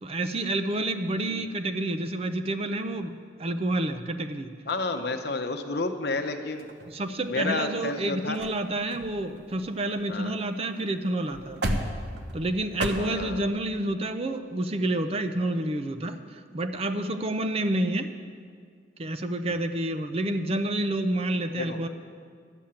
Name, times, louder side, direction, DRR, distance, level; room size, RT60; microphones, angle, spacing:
voice 1, 0.0-4.5 6.9-11.6 12.3-18.1 19.0-21.9, right 1 dB, 30° right, 9 dB, 0.5 m, -29 dB
voice 2, 4.7-6.7 7.3-8.4 10.1-10.3 12.9-13.5 19.4-19.5 21.6-21.8, left 3 dB, 60° left, 6 dB, 0.9 m, -31 dB
sound 1, 6.6-7.4 8.0-8.1 8.3-8.6 8.9-10.5 10.8-10.9 11.2-12.9, right 1 dB, 60° right, 1.0 m, -34 dB
11.5 x 7.3 x 8.8 m, 2.1 s
head